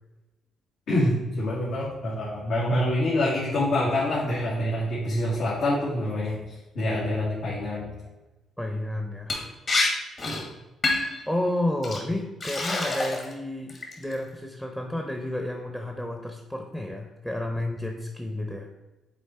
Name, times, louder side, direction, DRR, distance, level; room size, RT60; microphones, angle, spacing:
voice 1, 0.9-7.9 10.2-10.3, left 1 dB, 75° left, -7 dB, 1.9 m, -26 dB
voice 2, 8.6-9.3 11.0-18.7, left 1 dB, 5° left, 3 dB, 0.8 m, -31 dB
Liquid, 9.3-9.4 9.7-9.9 10.2-10.4 10.8-11.2 11.8-12.0 12.4-13.3 13.7-14.1, left 2 dB, 45° left, 1.8 m, -26 dB
7.1 x 4.2 x 4.3 m, 1.1 s
cardioid pair, 90°, 0 cm